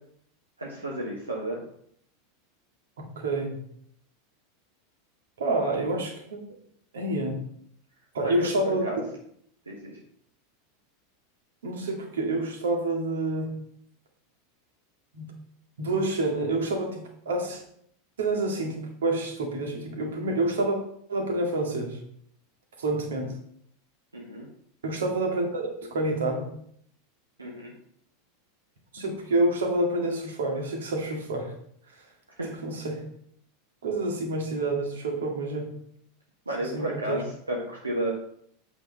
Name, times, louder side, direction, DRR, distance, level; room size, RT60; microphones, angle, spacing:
voice 1, 0.6-1.6 8.2-9.0 9.7-10.0 24.1-24.5 27.4-27.7 32.4-32.5 36.4-38.1, right 1 dB, 85° right, -3 dB, 1.4 m, -32 dB
voice 2, 3.0-3.6 5.4-6.4 6.9-7.4 8.1-8.8 11.6-13.5 15.1-15.3 15.8-17.6 18.2-20.8 21.1-22.0 22.8-23.3 24.8-26.5 28.9-31.5 32.5-33.0 33.8-35.7 36.7-37.2, right 2 dB, 65° right, 1 dB, 2.1 m, -28 dB
8.3 x 6.2 x 4.1 m, 0.67 s
figure-of-eight pair, 85°, 0 cm